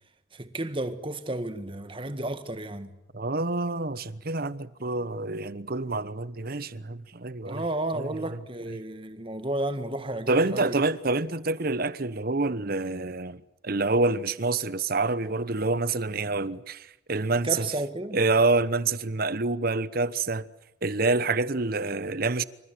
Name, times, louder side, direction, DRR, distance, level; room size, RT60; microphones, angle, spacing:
voice 1, 0.3-2.9 7.5-10.8 17.4-18.2, right 1 dB, 25° right, 1.8 m, -32 dB
voice 2, 3.1-7.6 7.9-8.1 10.3-17.7 18.1-20.5 20.8-22.4, right 3 dB, 50° right, 1.0 m, -27 dB
27.5 x 26.5 x 7.8 m
head